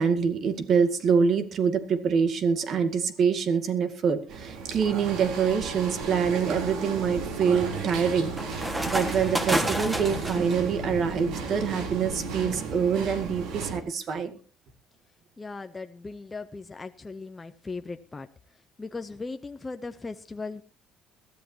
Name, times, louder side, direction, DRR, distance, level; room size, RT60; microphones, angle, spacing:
voice 1, 0.0-14.4, right 6 dB, 45° right, 8 dB, 2.1 m, -25 dB
sound 1, 4.3-13.8, right 4 dB, 70° right, 3.6 m, -34 dB
sound 2, 6.3-10.6, right 1 dB, 10° right, 1.7 m, -31 dB
voice 2, 15.4-20.6, left 3 dB, 15° left, 7 dB, 0.7 m, -38 dB
22.0 x 14.0 x 2.9 m, 0.36 s
cardioid pair, 140°, 0 cm